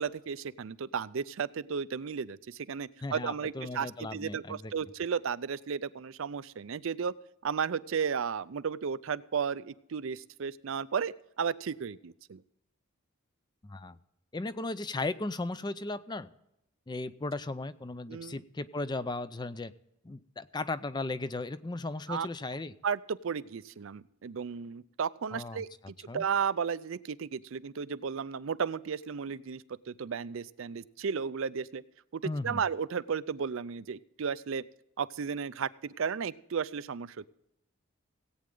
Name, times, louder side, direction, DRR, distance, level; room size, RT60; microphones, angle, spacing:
voice 1, 0.0-7.1 7.4-12.4 18.1-18.4 22.1-22.3 22.8-31.8 32.1-34.6 35.0-37.3, right 6 dB, 65° right, 16 dB, 0.4 m, -34 dB
voice 2, 3.0-4.7 13.6-14.0 14.3-16.3 16.9-19.7 20.0-22.7 25.3-25.6 26.1-26.2 32.2-32.6, left 2 dB, 20° left, 14 dB, 0.4 m, -36 dB
17.5 x 8.8 x 3.8 m, 0.82 s
head